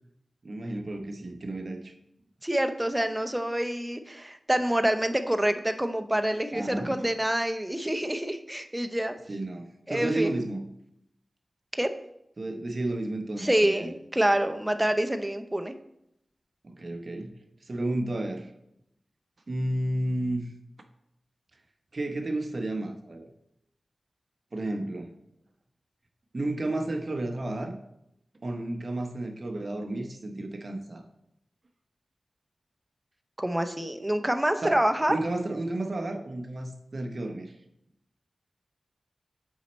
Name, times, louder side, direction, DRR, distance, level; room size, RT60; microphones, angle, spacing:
voice 1, 0.4-1.9 6.5-7.0 9.3-10.6 12.4-13.9 16.6-17.3 17.7-18.5 19.5-20.5 21.9-23.3 24.5-25.1 26.3-27.7 28.4-31.0 34.6-34.8 35.1-37.5, right 1 dB, 45° right, 5 dB, 0.8 m, -32 dB
voice 2, 2.4-9.1 9.9-10.3 11.8-11.9 13.4-15.7 33.4-35.2, right 1 dB, 10° right, 8 dB, 0.5 m, -27 dB
7.5 x 4.2 x 4.1 m, 0.79 s
wide cardioid pair, 90°, 0 cm